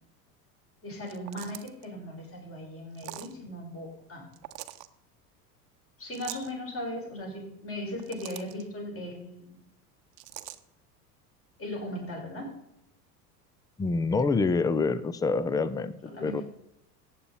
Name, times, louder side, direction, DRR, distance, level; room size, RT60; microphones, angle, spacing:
voice 1, 0.8-4.3 6.0-9.6 11.6-12.6 16.0-16.4, left 1 dB, 30° left, -1 dB, 5.4 m, -38 dB
sound 1, 1.0-1.9 2.9-3.3 4.3-4.9 6.1-6.5 7.8-8.6 10.2-10.6, right 17 dB, 55° right, 0.9 m, -43 dB
voice 2, 13.8-16.4, left 4 dB, 10° left, 15 dB, 0.5 m, -27 dB
15.0 x 9.1 x 4.1 m, 0.81 s
figure-of-eight pair, 80°, 48 cm